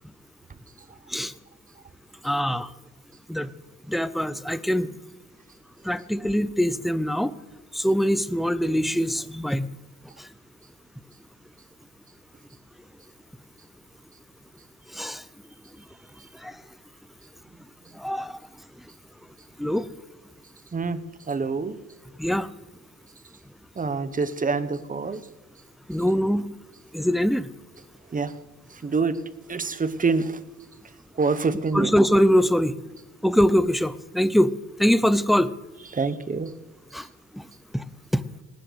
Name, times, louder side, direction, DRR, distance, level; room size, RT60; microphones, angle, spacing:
voice 1, 2.2-2.7 3.3-3.5 3.9-4.9 5.8-7.3 7.7-9.7 14.9-15.2 16.4-16.5 18.0-18.4 19.6-19.9 22.2-22.5 25.9-26.5 26.9-27.5 31.7-32.8 33.2-34.5 34.8-35.5 36.9-37.0 37.3-37.4 37.7-37.8, equal, ahead, 15 dB, 0.7 m, -23 dB
voice 2, 21.3-21.8 23.8-25.2 28.1-28.3 28.7-29.2 29.5-30.4 31.2-31.9 35.9-36.5, right 4 dB, 25° right, 13 dB, 1.2 m, -26 dB
18.5 x 7.9 x 8.1 m, 1.1 s
cardioid pair, 90°, 30 cm